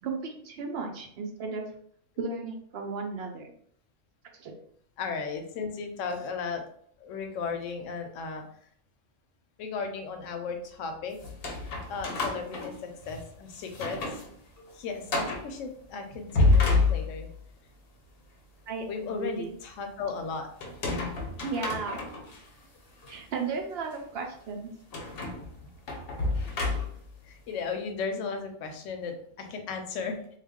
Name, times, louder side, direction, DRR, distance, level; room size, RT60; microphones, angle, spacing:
voice 1, 0.0-1.7 2.2-3.5 4.4-4.5 18.7-19.6 21.4-22.0 23.1-24.7, right 4 dB, 65° right, 3 dB, 0.7 m, -34 dB
voice 2, 5.0-6.6 7.0-8.4 9.6-11.2 11.9-14.2 14.7-17.3 18.9-20.5 27.2-30.2, left 5 dB, 80° left, 5 dB, 0.9 m, -35 dB
sound 1, 11.2-13.3 13.7-14.3 14.6-14.7 15.1-15.5 16.1-17.4 20.6-22.4 23.0-23.2 24.9-27.2, left 3 dB, 60° left, 0.8 m, -28 dB
2.3 x 2.3 x 3.5 m, 0.64 s
omnidirectional pair, 1.3 m